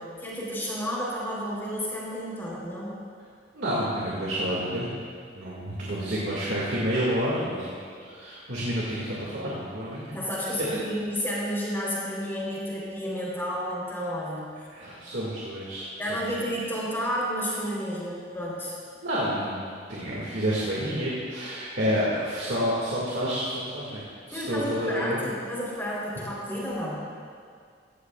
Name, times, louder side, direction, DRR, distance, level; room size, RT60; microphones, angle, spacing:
voice 1, 0.0-3.0 10.1-14.5 16.0-18.7 24.3-27.1, equal, 15° left, -6 dB, 3.5 m, -31 dB
voice 2, 3.5-5.0 5.3-10.5 14.7-16.5 19.0-19.6 19.9-24.0 24.3-25.2, equal, 75° right, -6 dB, 2.0 m, -29 dB
16.5 x 13.5 x 2.4 m, 2.1 s
head